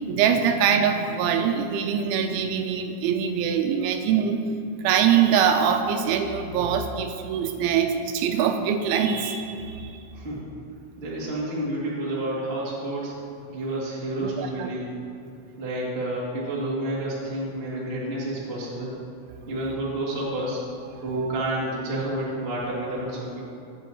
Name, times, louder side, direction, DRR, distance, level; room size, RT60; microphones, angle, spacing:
voice 1, 0.1-4.4 4.8-10.1 14.2-14.7, right 8 dB, 85° right, 6 dB, 2.8 m, -23 dB
voice 2, 10.1-10.4 10.9-13.1 13.5-14.9 15.6-19.0 19.5-20.6 21.0-23.4, right 1 dB, 60° right, -7 dB, 0.6 m, -29 dB
16.5 x 8.1 x 3.0 m, 2.5 s
omnidirectional pair, 5.6 m